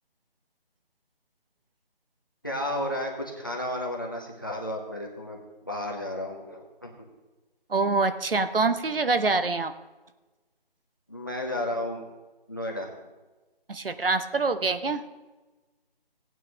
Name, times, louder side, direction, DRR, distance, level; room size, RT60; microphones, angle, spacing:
voice 1, 2.4-7.0 11.1-12.0 12.5-13.1, left 1 dB, 20° left, 1 dB, 0.9 m, -33 dB
voice 2, 7.7-9.7 13.7-15.0, right 3 dB, 70° right, 11 dB, 0.9 m, -25 dB
17.0 x 9.1 x 2.9 m, 1.2 s
figure-of-eight pair, 180°, 30 cm